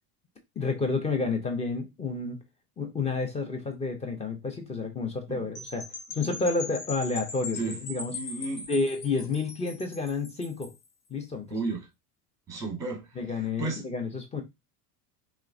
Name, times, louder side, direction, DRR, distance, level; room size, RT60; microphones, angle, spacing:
voice 1, 0.6-2.4 2.8-8.1 8.7-10.7 11.1-11.5 13.2-14.4, left 3 dB, 15° left, 0.4 m, -30 dB
sound 1, 5.5-10.8, left 4 dB, 65° left, 1.3 m, -40 dB
voice 2, 8.1-8.7 9.2-9.3 11.5-11.9 12.5-13.9, right 3 dB, 5° right, 0.8 m, -34 dB
3.0 x 2.0 x 2.3 m
supercardioid pair, 105°, 47 cm